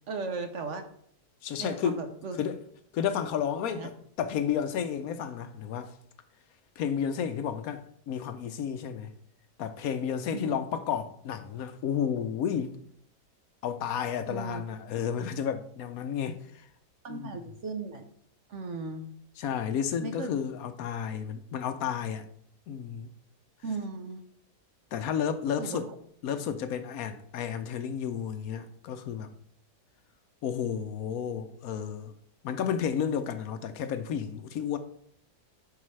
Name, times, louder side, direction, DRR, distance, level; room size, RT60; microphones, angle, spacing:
voice 1, 0.1-0.8 1.6-2.4 3.6-3.9 10.3-10.6 14.3-14.6 17.0-18.0 18.5-19.1 20.0-20.3 23.6-24.2 25.6-25.8, right 4 dB, 55° right, 0.9 m, -36 dB
voice 2, 1.4-2.0 2.4-2.6 2.9-5.9 6.8-9.1 9.6-12.8 13.6-16.7 17.1-17.4 19.4-22.2 22.7-23.1 24.9-25.9 26.2-29.3 30.4-32.1 32.4-34.8, left 8 dB, 70° left, 1.0 m, -32 dB
11.5 x 4.8 x 3.2 m
omnidirectional pair, 1.7 m